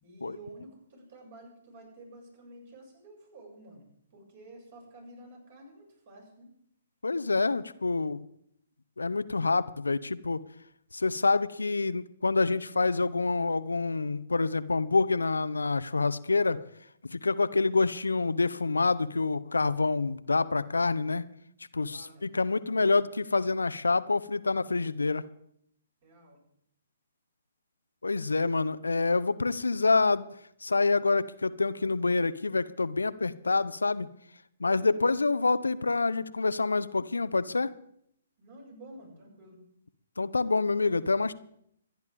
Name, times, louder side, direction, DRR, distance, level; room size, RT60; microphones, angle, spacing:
voice 1, 0.0-3.8 4.1-6.5 21.9-22.9 26.0-26.4 34.7-35.3 38.4-39.6, right 1 dB, 45° right, -1 dB, 7.4 m, -51 dB
voice 2, 7.0-8.2 9.0-10.4 10.9-16.6 17.0-21.3 21.7-25.2 28.0-30.3 30.6-34.1 34.6-37.7 40.2-41.3, left 3 dB, 70° left, 14 dB, 0.6 m, -27 dB
25.0 x 10.5 x 3.7 m, 0.70 s
figure-of-eight pair, 125°, 0 cm